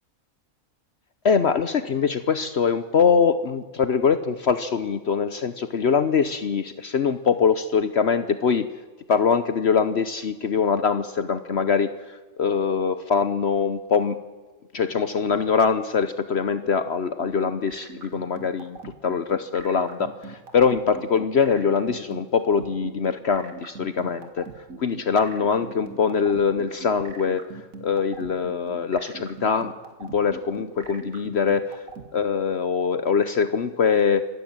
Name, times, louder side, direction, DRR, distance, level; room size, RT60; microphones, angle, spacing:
voice 1, 1.2-8.7 9.1-14.2 14.7-24.5 24.8-27.4 27.8-29.7 30.0-31.8 32.1-34.3, left 6 dB, 55° left, 11 dB, 1.1 m, -23 dB
sound 1, 17.2-32.0, right 4 dB, 80° right, 2.3 m, -40 dB
25.5 x 14.0 x 8.9 m, 1.3 s
omnidirectional pair, 1.4 m